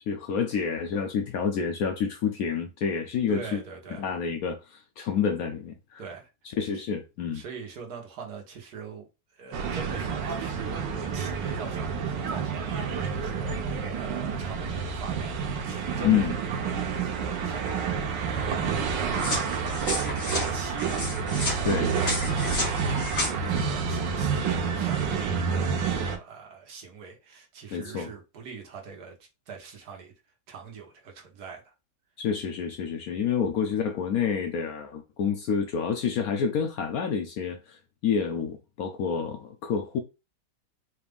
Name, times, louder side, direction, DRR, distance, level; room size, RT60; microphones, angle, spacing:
voice 1, 0.1-3.6 4.0-6.0 6.6-7.4 16.0-16.3 21.6-21.9 27.7-28.1 32.2-40.0, left 7 dB, 70° left, 0.9 m, -28 dB
voice 2, 3.3-4.0 6.0-6.3 6.6-6.8 7.3-19.5 20.3-21.0 21.6-29.1 29.5-30.1 30.5-31.7, right 5 dB, 65° right, 1.4 m, -43 dB
sound 1, 9.5-26.2, right 6 dB, 85° right, 1.4 m, -29 dB
sound 2, 19.2-23.3, left 2 dB, 50° left, 1.9 m, -32 dB
4.3 x 2.4 x 3.4 m
omnidirectional pair, 1.9 m